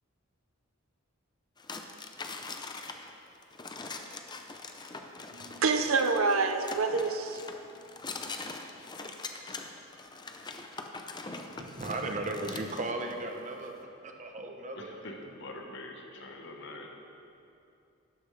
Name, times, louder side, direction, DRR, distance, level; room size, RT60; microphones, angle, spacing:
sound 1, 1.6-13.2, left 3 dB, 20° left, 0.5 m, -42 dB
voice 1, 5.3-7.4, right 4 dB, 75° right, 0.7 m, -27 dB
voice 2, 11.6-13.8 14.0-14.9, right 2 dB, 35° right, 0.8 m, -36 dB
voice 3, 14.7-16.9, left 2 dB, 60° left, 1.2 m, -44 dB
12.0 x 11.5 x 3.3 m
head